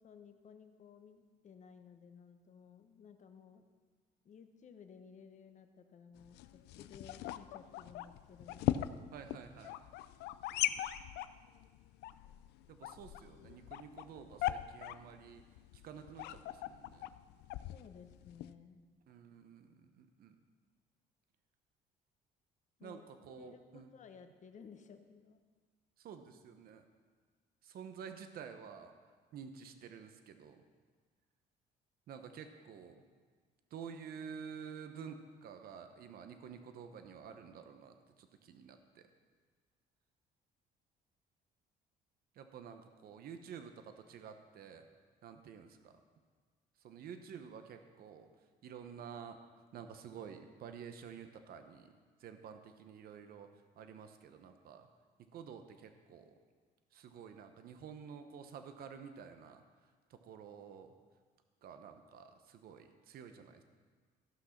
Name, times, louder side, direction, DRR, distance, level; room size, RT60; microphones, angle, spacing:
voice 1, 0.0-3.6 4.2-8.7 17.7-18.8 22.8-23.0 23.4-25.4, left 6 dB, 45° left, 7 dB, 1.0 m, -56 dB
sound 1, 6.2-18.5, left 13 dB, 80° left, 0.4 m, -40 dB
voice 2, 9.1-9.8 12.7-15.4 15.7-17.1 19.1-20.3 22.8-23.9 26.0-26.8 27.6-28.9 29.3-30.6 32.1-33.0 33.7-39.1 42.3-44.9 45.2-46.0 46.8-48.3 48.6-49.4 49.7-51.9 52.2-53.5 53.8-54.9 55.2-56.4 56.9-59.6 60.1-60.9 61.6-63.6, right 7 dB, 60° right, 7 dB, 0.9 m, -50 dB
14.5 x 6.2 x 5.8 m, 1.5 s
cardioid pair, 110°, 17 cm